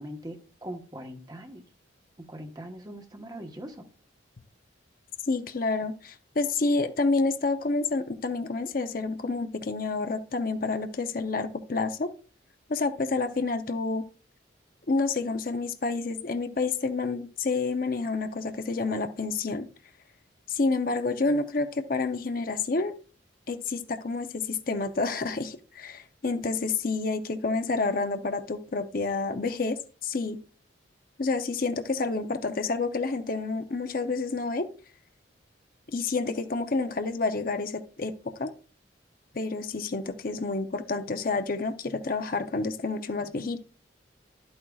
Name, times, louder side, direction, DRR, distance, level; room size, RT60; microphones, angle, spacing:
voice 1, 0.0-1.6 2.3-3.8, equal, 20° right, 4 dB, 1.1 m, -41 dB
voice 2, 5.2-12.1 12.7-14.1 14.9-19.7 20.5-22.9 23.5-30.4 31.2-34.7 35.9-38.1 38.4-38.5 39.3-43.6, left 3 dB, 50° left, 8 dB, 0.6 m, -29 dB
11.5 x 8.7 x 2.3 m, 0.38 s
head